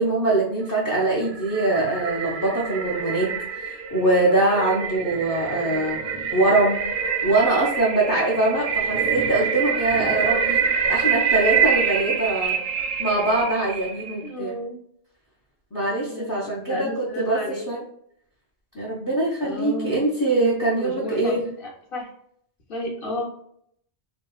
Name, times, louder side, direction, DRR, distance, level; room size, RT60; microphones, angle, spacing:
voice 1, 0.0-6.0 6.3-6.8 7.2-10.6 10.9-12.6 13.0-14.5 15.7-17.4 17.7-17.8 18.7-21.4, right 2 dB, 25° left, -5 dB, 0.4 m, -23 dB
sound 1, 0.8-14.2, right 6 dB, 55° right, 0.6 m, -26 dB
voice 2, 5.5-6.0 14.2-14.8 16.0-17.9 19.4-20.0 20.3-22.1 22.7-23.2, left 1 dB, 55° left, -1 dB, 0.8 m, -33 dB
3.5 x 2.1 x 2.3 m, 0.68 s
omnidirectional pair, 1.2 m